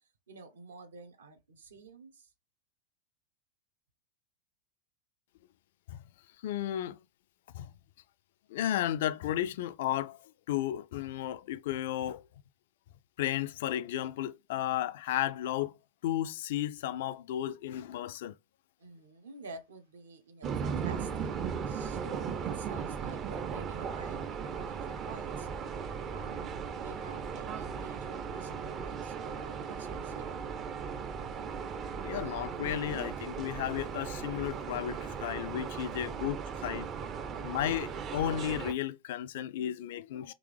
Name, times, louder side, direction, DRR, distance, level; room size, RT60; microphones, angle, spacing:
voice 1, 0.0-2.3 18.8-21.3 21.6-25.7 26.1-30.4, right 4 dB, 65° right, 0.8 m, -49 dB
voice 2, 6.4-7.0 7.5-7.7 8.5-12.3 13.2-15.7 16.0-18.3 32.0-36.9 37.4-40.3, left 12 dB, 55° left, 0.3 m, -33 dB
sound 1, 20.4-38.7, right 6 dB, 30° right, 0.5 m, -37 dB
3.7 x 3.0 x 3.2 m
figure-of-eight pair, 90°, 0 cm